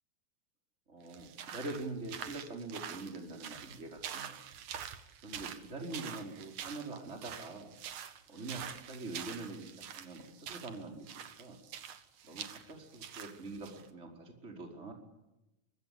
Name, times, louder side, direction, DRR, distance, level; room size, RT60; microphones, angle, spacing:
voice 1, 0.9-4.4 5.2-7.7 8.3-11.6 12.2-14.9, right 2 dB, 20° right, 2 dB, 5.0 m, -44 dB
sound 1, 1.1-13.9, right 9 dB, 70° right, 3.0 m, -46 dB
24.5 x 23.0 x 8.6 m, 0.95 s
omnidirectional pair, 3.7 m